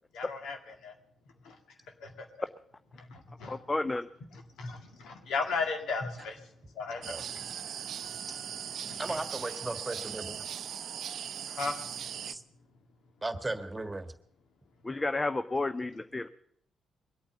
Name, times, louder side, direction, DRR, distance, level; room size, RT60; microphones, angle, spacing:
voice 1, 0.1-0.9 1.4-1.6 2.0-2.3 2.9-3.6 4.3-6.5 6.7-7.5 8.0-8.4 8.8-9.2 11.5-11.8, left 4 dB, 65° left, 4 dB, 1.9 m, -36 dB
voice 2, 3.5-4.1 14.8-16.3, left 2 dB, 25° left, 12 dB, 0.6 m, -31 dB
sound 1, 7.0-12.3, right 9 dB, 60° right, 0.5 m, -39 dB
voice 3, 9.0-10.4 12.3-12.4 13.2-14.1, right 2 dB, 20° right, 9 dB, 1.6 m, -36 dB
21.5 x 8.8 x 7.1 m, 0.68 s
hypercardioid pair, 40°, 0 cm